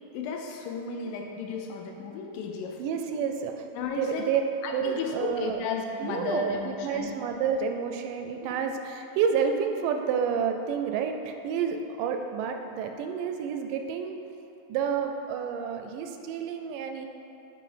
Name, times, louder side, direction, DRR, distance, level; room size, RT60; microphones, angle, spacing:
voice 1, 0.1-2.8 3.8-4.3 4.6-7.1, left 4 dB, 85° left, 2 dB, 2.5 m, -33 dB
voice 2, 2.8-3.6 4.0-4.4 4.7-5.6 6.0-14.1 14.7-17.1, right 7 dB, 85° right, 5 dB, 2.2 m, -29 dB
8.3 x 4.2 x 5.7 m, 3.0 s
omnidirectional pair, 3.8 m